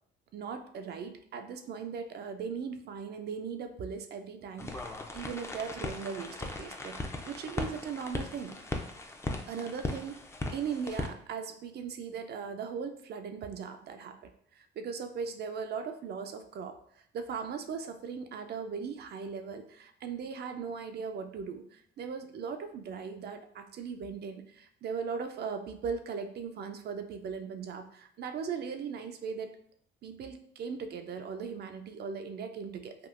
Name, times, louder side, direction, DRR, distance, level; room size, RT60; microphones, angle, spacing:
voice 1, 0.3-8.5 9.5-10.2 10.5-16.8 17.1-29.5 30.0-33.0, right 6 dB, 55° right, 7 dB, 0.4 m, -38 dB
sound 1, 4.6-11.1, left 2 dB, 15° left, 0.4 m, -38 dB
3.5 x 2.3 x 2.4 m, 0.64 s
cardioid pair, 90°, 20 cm